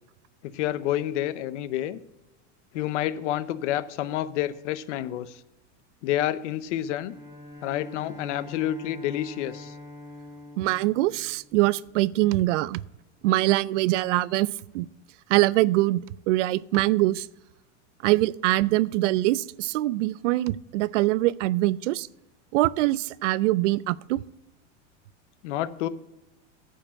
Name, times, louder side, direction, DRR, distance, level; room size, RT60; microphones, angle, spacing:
voice 1, 0.4-2.0 2.7-5.4 6.0-7.1 7.6-9.7 25.4-25.9, left 12 dB, 75° left, 15 dB, 0.7 m, -29 dB
Bowed string instrument, 7.1-12.1, left 2 dB, 10° right, 1.8 m, -45 dB
voice 2, 10.6-12.8 13.2-14.5 14.7-14.9 15.3-17.3 18.0-22.1 22.5-24.2, right 17 dB, 75° right, 21 dB, 0.5 m, -23 dB
10.0 x 4.6 x 7.4 m, 0.95 s
supercardioid pair, 145°, 36 cm